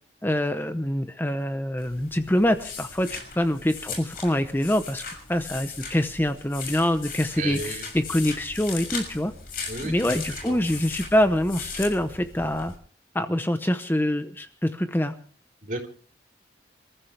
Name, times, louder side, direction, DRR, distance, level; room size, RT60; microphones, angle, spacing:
voice 1, 0.2-5.0 5.3-9.3 9.8-12.7 13.1-15.1, left 1 dB, 10° left, 9 dB, 0.8 m, -25 dB
sound 1, 1.8-12.8, left 5 dB, 50° left, 6.3 m, -38 dB
voice 2, 7.4-7.8 9.7-10.6 15.6-15.9, right 2 dB, 45° right, 1 dB, 3.9 m, -33 dB
28.0 x 14.5 x 3.4 m, 0.41 s
head